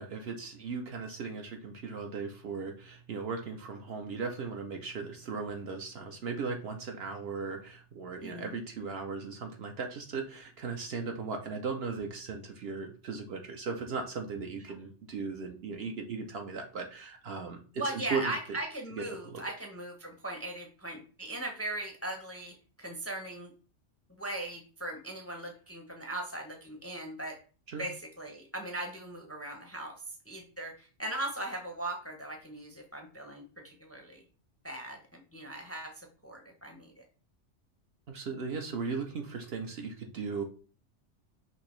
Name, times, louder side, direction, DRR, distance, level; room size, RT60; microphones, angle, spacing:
voice 1, 0.0-17.6 17.8-18.3 19.0-19.4 27.7-27.9 38.1-40.4, right 4 dB, 65° right, 3 dB, 0.8 m, -37 dB
voice 2, 8.2-8.5 17.8-23.5 24.2-27.4 27.8-30.0 30.3-34.2 34.6-37.0, right 1 dB, 15° left, 3 dB, 0.5 m, -39 dB
5.9 x 2.8 x 3.1 m, 0.38 s
omnidirectional pair, 1.2 m